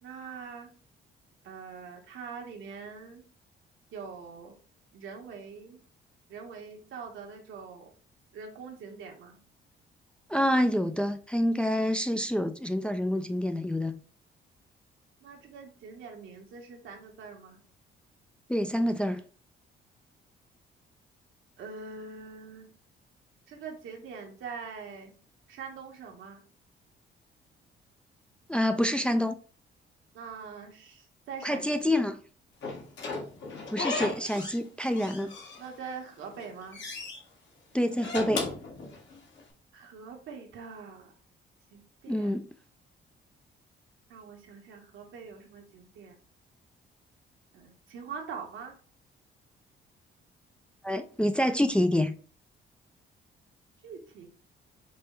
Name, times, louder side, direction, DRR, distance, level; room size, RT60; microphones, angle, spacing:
voice 1, 0.0-0.7 1.4-3.2 3.9-4.5 4.9-5.8 6.3-7.9 8.3-9.4 15.2-17.6 21.6-22.7 23.5-25.1 25.5-26.4 30.1-31.6 35.6-36.8 39.7-41.1 41.7-42.3 44.1-46.1 47.5-48.7 53.8-54.3, right 5 dB, 80° right, 1.3 m, -43 dB
voice 2, 10.3-14.0 18.5-19.2 28.5-29.4 31.4-32.2 33.7-35.3 37.7-38.5 42.1-42.5 50.8-52.1, left 1 dB, 5° left, 0.4 m, -27 dB
Slam / Squeak, 32.6-34.6 34.9-35.9 36.3-37.2 37.9-39.4, left 3 dB, 65° left, 1.5 m, -36 dB
5.3 x 2.2 x 4.4 m
cardioid pair, 90°, 20 cm